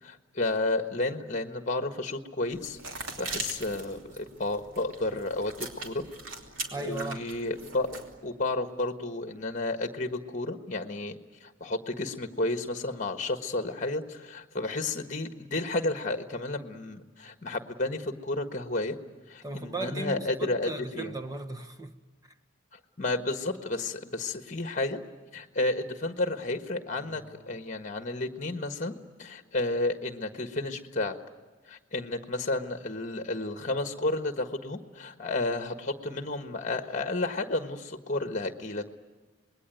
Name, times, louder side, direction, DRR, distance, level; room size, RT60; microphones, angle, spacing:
voice 1, 0.0-2.8 3.2-6.0 6.8-19.0 19.3-21.2 23.0-25.0 25.3-31.2 31.7-38.9, left 2 dB, 35° left, 1.4 m, -32 dB
sound 1, 2.5-8.1, right 3 dB, 75° right, 2.9 m, -41 dB
voice 2, 6.7-7.3 19.4-21.9, right 2 dB, 15° right, 1.2 m, -36 dB
Guitar, 27.0-31.8, left 1 dB, 45° right, 6.4 m, -61 dB
26.5 x 21.0 x 9.2 m
head